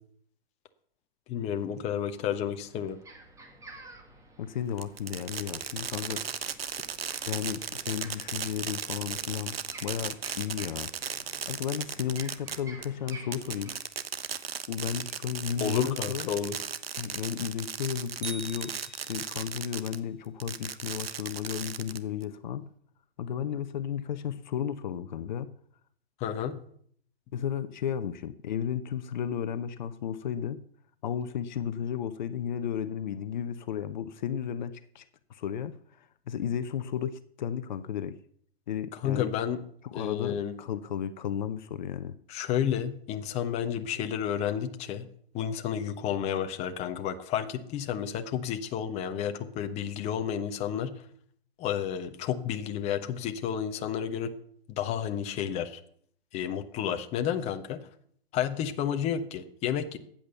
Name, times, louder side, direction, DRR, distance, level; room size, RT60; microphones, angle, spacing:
voice 1, 1.3-3.0 15.6-16.6 26.2-26.6 39.0-39.6 39.9-40.6 42.3-45.1 45.3-50.9 51.6-54.3 54.7-55.8 56.3-57.8 58.3-60.0, left 9 dB, 20° left, 8 dB, 1.1 m, -31 dB
sound 1, 1.7-1.8 2.2-13.8, right 2 dB, 10° right, 2.1 m, -52 dB
voice 2, 4.4-6.2 7.3-9.6 9.8-10.9 11.5-13.8 14.7-16.3 17.0-22.7 23.2-25.5 27.3-30.6 31.0-35.0 35.3-38.1 38.7-39.3 39.9-42.1, left 9 dB, 45° left, 12 dB, 1.0 m, -33 dB
Fireworks, 4.8-20.0 20.4-22.2, right 7 dB, 70° right, 1.3 m, -36 dB
sound 2, 18.2-19.6, right 4 dB, 55° right, 2.9 m, -43 dB
15.0 x 8.9 x 6.8 m, 0.62 s
figure-of-eight pair, 130°, 31 cm